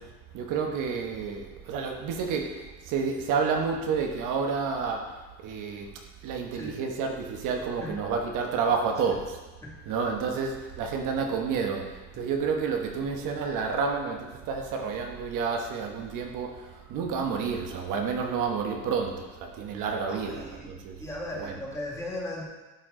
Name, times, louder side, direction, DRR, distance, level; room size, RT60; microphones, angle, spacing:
voice 1, 0.0-9.5 9.9-21.0 21.4-21.6, right 5 dB, 65° right, 3 dB, 1.1 m, -30 dB
voice 2, 20.1-20.7 21.0-22.4, left 1 dB, 10° left, -4 dB, 2.0 m, -37 dB
12.5 x 4.6 x 3.7 m, 1.2 s
cardioid pair, 135°, 34 cm